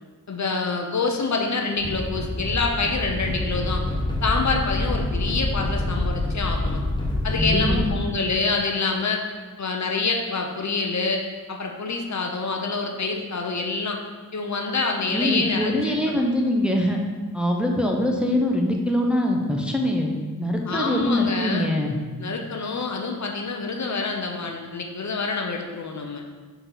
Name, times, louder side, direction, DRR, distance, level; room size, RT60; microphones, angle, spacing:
voice 1, 0.3-3.8 4.2-6.8 7.2-9.2 9.6-11.2 11.5-14.0 14.3-16.2 20.7-21.7 22.2-26.2, left 4 dB, 50° left, 2 dB, 0.8 m, -26 dB
sound 1, 1.8-7.9, left 1 dB, 15° left, 1.1 m, -26 dB
voice 2, 7.4-7.9 15.1-17.0 17.3-22.0, left 1 dB, 5° right, 1 dB, 0.8 m, -23 dB
5.9 x 4.0 x 3.9 m, 1.4 s
cardioid pair, 65°, 35 cm